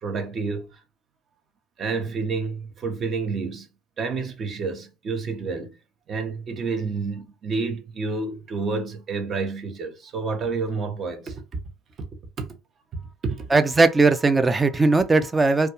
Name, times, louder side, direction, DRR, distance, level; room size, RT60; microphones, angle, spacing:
voice 1, 0.0-0.8 1.8-3.7 4.0-5.8 6.1-11.4 12.4-12.5 13.2-13.5, right 4 dB, 40° right, 0.7 m, -29 dB
voice 2, 13.5-15.7, right 3 dB, 20° right, 0.3 m, -19 dB
2.3 x 2.2 x 2.9 m
hypercardioid pair, 75°, 0 cm